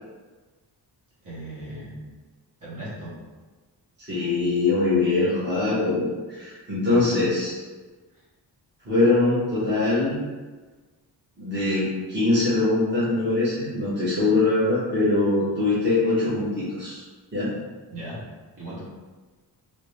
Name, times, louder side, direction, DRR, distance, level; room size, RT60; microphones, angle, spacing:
voice 1, 1.2-2.0 2.6-3.1 6.9-7.1 17.9-18.2 18.6-18.8, right 1 dB, 50° right, -9 dB, 1.4 m, -37 dB
voice 2, 4.0-7.6 8.8-10.2 11.4-17.0 17.3-17.5, left 2 dB, 25° right, -10 dB, 1.1 m, -22 dB
2.8 x 2.7 x 3.3 m, 1.3 s
wide cardioid pair, 140°, 41 cm